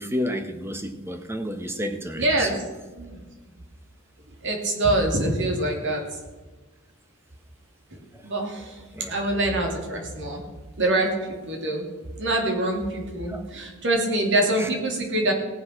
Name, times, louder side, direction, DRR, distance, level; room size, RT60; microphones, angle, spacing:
voice 1, 0.0-2.6 8.1-8.3 8.9-9.1 13.3-13.4 14.6-14.7, equal, 10° right, 7 dB, 1.2 m, -31 dB
voice 2, 2.2-2.5 3.0-3.2 4.3-6.2 7.9-10.4 10.8-11.9 12.2-15.3, right 1 dB, 60° right, 1 dB, 3.0 m, -25 dB
18.0 x 7.4 x 5.9 m, 1.2 s
head